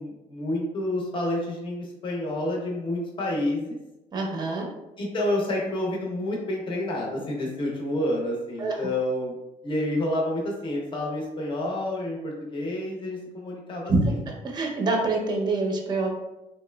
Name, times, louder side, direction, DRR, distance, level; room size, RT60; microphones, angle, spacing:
voice 1, 0.0-3.8 5.0-9.4 9.6-14.2, left 1 dB, 30° left, -2 dB, 0.7 m, -29 dB
voice 2, 4.1-4.7 8.6-8.8 13.9-14.0 14.4-16.2, right 3 dB, 30° right, 1 dB, 0.6 m, -25 dB
3.1 x 2.9 x 2.2 m, 0.97 s
cardioid pair, 130°, 16 cm